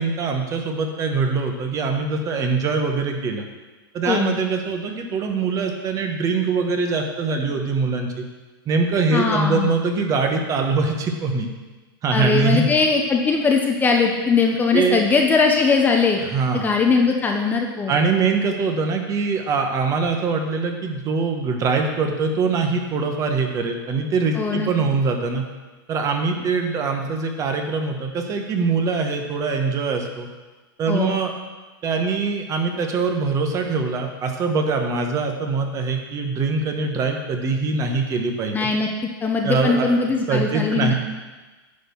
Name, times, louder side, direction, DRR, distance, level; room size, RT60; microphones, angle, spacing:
voice 1, 0.0-3.4 3.9-8.2 8.7-11.5 12.0-12.7 14.7-15.1 16.3-16.7 17.9-25.4 25.9-30.3 30.8-31.3 31.8-38.7 39.4-39.9 40.3-40.9, right 4 dB, 25° right, 4 dB, 1.2 m, -23 dB
voice 2, 9.1-9.7 12.1-16.2 16.5-18.0 24.4-24.7 30.9-31.2 38.5-38.9 39.2-40.9, left 4 dB, 15° left, 2 dB, 0.7 m, -20 dB
10.0 x 4.3 x 7.0 m, 1.2 s
hypercardioid pair, 135°, 12 cm